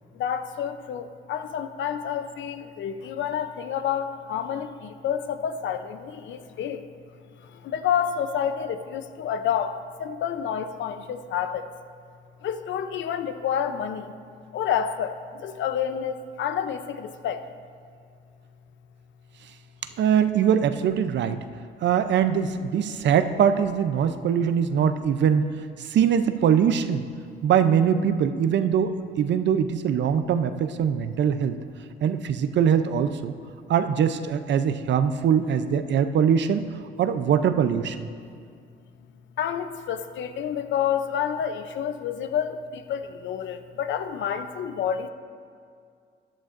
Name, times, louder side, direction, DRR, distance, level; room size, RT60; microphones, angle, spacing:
voice 1, 0.1-6.9 7.5-11.6 12.4-14.1 14.5-17.4 39.4-45.1, left 8 dB, 70° left, 10 dB, 0.7 m, -29 dB
voice 2, 20.0-21.4 21.8-25.5 25.8-27.0 27.4-31.6 32.0-33.3 33.7-36.7 37.0-38.1, right 8 dB, 65° right, 10 dB, 0.6 m, -22 dB
15.0 x 11.0 x 2.6 m, 2.2 s
cardioid pair, 90°, 20 cm